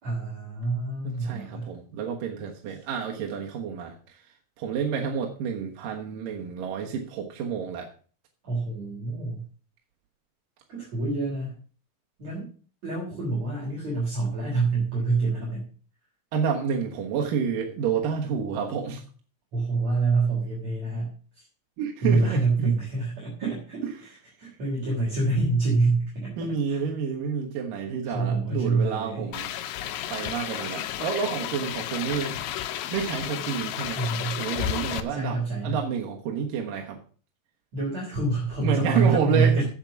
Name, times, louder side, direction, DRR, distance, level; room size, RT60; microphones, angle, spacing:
voice 1, 0.0-1.7 8.4-9.4 10.7-11.5 12.2-12.5 12.8-15.7 19.5-21.4 22.0-23.8 24.4-26.8 28.0-29.3 33.9-34.4 35.1-35.8 37.7-39.6, right 3 dB, 40° right, -5 dB, 4.4 m, -26 dB
voice 2, 1.0-4.2 4.6-7.9 16.3-19.0 21.8-22.7 23.4-23.5 26.4-29.5 30.1-32.4 32.9-34.0 34.3-37.0 38.6-39.5, right 7 dB, 65° right, 0 dB, 2.6 m, -29 dB
sound 1, 29.3-35.0, left 11 dB, 75° left, 2.0 m, -32 dB
8.9 x 7.6 x 7.1 m, 0.41 s
omnidirectional pair, 4.8 m